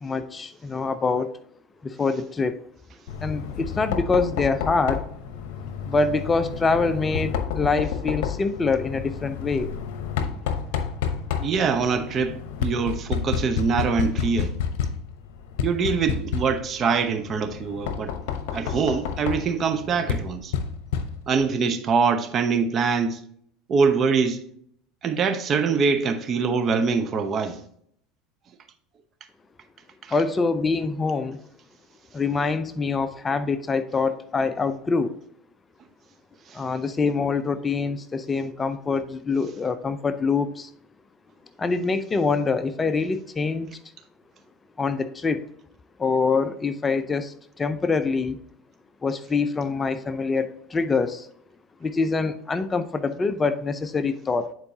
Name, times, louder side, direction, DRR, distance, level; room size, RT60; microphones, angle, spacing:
voice 1, 0.0-1.3 1.8-2.6 3.2-5.0 5.9-9.7 30.1-31.4 32.1-35.2 36.5-40.7 41.6-43.8 44.8-45.4 46.0-48.4 49.0-51.3 51.8-54.5, left 4 dB, 25° left, 0.5 m, -25 dB
Knock, 3.1-21.5, left 7 dB, 75° left, 0.8 m, -30 dB
voice 2, 11.4-14.5 15.6-18.1 18.5-20.5 21.3-23.2 23.7-24.4 25.0-27.6 30.0-30.1, right 5 dB, 40° right, 0.8 m, -24 dB
9.9 x 4.5 x 2.7 m
supercardioid pair, 100°, 0 cm